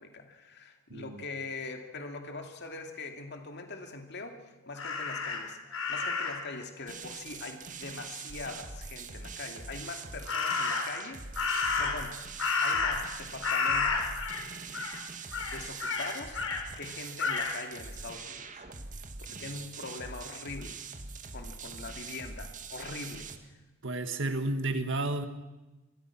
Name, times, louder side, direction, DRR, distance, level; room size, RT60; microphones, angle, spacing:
voice 1, 0.0-11.2 11.8-12.3 12.6-14.2 15.5-16.4 16.8-18.7 19.2-20.8 21.3-23.3, left 3 dB, 60° left, 5 dB, 2.5 m, -42 dB
voice 2, 0.9-1.2 19.3-19.5 23.8-25.3, right 2 dB, 65° right, 8 dB, 2.0 m, -32 dB
Crow, 4.8-6.5 10.3-11.0 11.4-13.2 13.4-14.4 14.7-15.0 15.3-16.6 17.2-17.5, left 4 dB, 80° left, 4.6 m, -31 dB
sound 1, 6.9-23.4, right 4 dB, 40° right, 1.7 m, -43 dB
27.5 x 22.0 x 6.0 m, 1.1 s
head